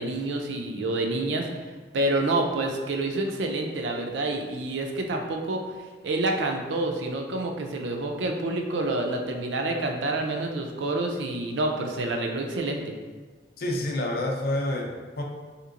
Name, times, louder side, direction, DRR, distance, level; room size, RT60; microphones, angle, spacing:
voice 1, 0.0-1.5 1.9-5.7 6.0-13.0, right 2 dB, 80° right, 3 dB, 0.4 m, -28 dB
voice 2, 13.6-15.2, left 1 dB, 55° left, 0 dB, 0.5 m, -28 dB
3.6 x 2.9 x 2.4 m, 1.4 s
head